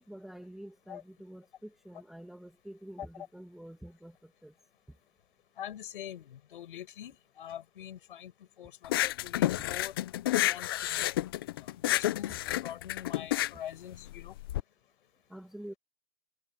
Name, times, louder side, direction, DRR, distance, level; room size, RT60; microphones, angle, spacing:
voice 1, 0.0-4.5 15.3-15.7, right 1 dB, ahead, 1.4 m, -47 dB
voice 2, 5.6-8.3 8.6-9.9 10.3-11.1 11.9-12.4 12.6-14.3, left 10 dB, 55° left, 8.0 m, -44 dB
sound 1, 8.8-14.6, left 15 dB, 25° left, 0.5 m, -30 dB
hypercardioid pair, 160°, 32 cm